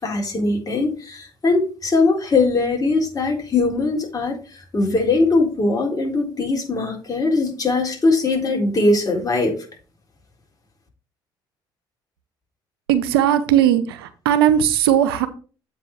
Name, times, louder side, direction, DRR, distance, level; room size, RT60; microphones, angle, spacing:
voice 1, 0.0-9.6, left 3 dB, 30° left, 3.9 m, -20 dB
voice 2, 12.9-15.3, right 10 dB, 85° right, 0.8 m, -18 dB
7.9 x 4.8 x 4.9 m
hypercardioid pair, 55°, 12 cm